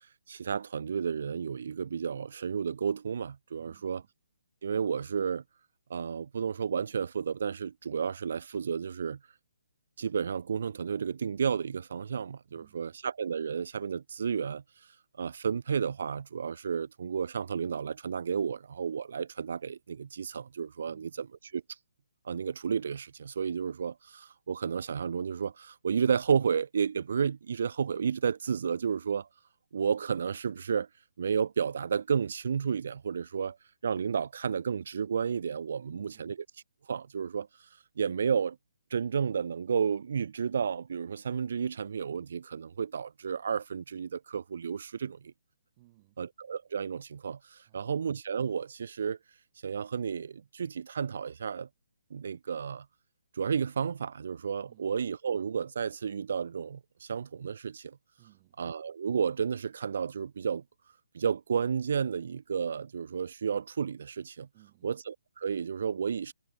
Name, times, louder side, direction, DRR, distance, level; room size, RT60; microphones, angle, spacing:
voice 1, 0.3-4.0 4.6-5.4 5.9-9.2 10.0-14.6 15.2-21.3 21.5-21.6 22.2-29.3 29.7-30.9 31.2-33.6 33.8-36.4 36.9-37.5 38.0-38.6 38.9-45.3 46.2-49.2 49.6-51.7 52.1-52.9 53.4-58.0 58.6-60.6 61.1-64.5 64.8-66.3, right 6 dB, 55° right, 0.4 m, -32 dB
voice 2, 3.6-4.1 12.5-12.9 20.9-21.2 35.8-36.4 45.8-46.2 47.6-48.0 54.7-54.9 58.2-58.6 64.5-64.9, right 20 dB, 25° right, 4.7 m, -61 dB
hypercardioid pair, 165°, 0 cm